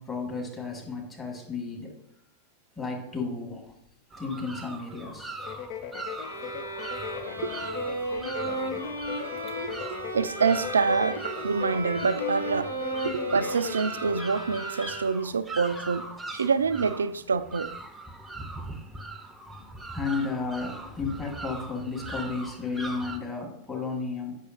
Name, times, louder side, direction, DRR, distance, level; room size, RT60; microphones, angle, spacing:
voice 1, 0.0-2.0 2.8-3.7 4.2-5.5 7.3-7.7 8.4-8.8 19.9-24.3, left 4 dB, 15° left, 2.1 m, -33 dB
sound 1, 4.1-23.2, right 2 dB, 10° right, 0.7 m, -41 dB
sound 2, 5.4-14.0, left 8 dB, 45° left, 0.5 m, -39 dB
sound 3, 6.2-15.4, right 1 dB, 85° left, 1.1 m, -35 dB
voice 2, 9.6-12.7 13.0-17.7, right 5 dB, 70° right, 0.3 m, -27 dB
8.0 x 5.9 x 2.8 m
figure-of-eight pair, 90°, 0 cm